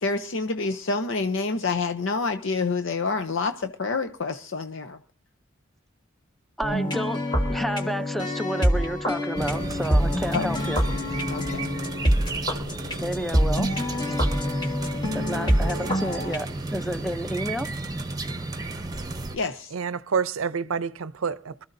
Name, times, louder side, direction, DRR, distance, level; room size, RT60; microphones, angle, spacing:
voice 1, 0.0-5.0 10.3-10.7 11.3-11.7 19.3-19.7, left 4 dB, 65° left, 0.7 m, -28 dB
sound 1, 6.6-16.4, equal, 20° left, 1.5 m, -26 dB
voice 2, 6.6-7.2 7.5-10.8 13.0-13.7 14.1-14.2 15.1-17.7, equal, ahead, 0.6 m, -30 dB
sound 2, 9.3-19.4, right 2 dB, 20° right, 1.0 m, -33 dB
voice 3, 19.7-21.7, right 6 dB, 90° right, 0.6 m, -28 dB
24.5 x 13.5 x 2.6 m
head